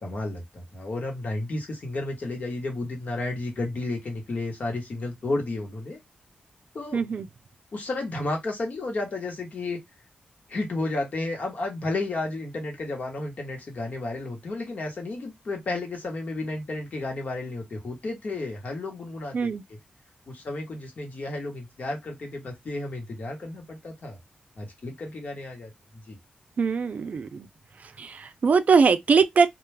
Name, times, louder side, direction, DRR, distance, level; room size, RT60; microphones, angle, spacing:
voice 1, 0.0-6.0 6.7-7.0 7.7-9.8 10.5-19.8 20.3-24.2 24.6-25.7 26.1-26.2, left 2 dB, 60° left, 1.1 m, -32 dB
voice 2, 6.9-7.3 19.3-19.6 26.6-27.5 28.0-29.5, right 5 dB, 55° right, 0.4 m, -21 dB
2.4 x 2.3 x 3.2 m
wide cardioid pair, 90°, 3 cm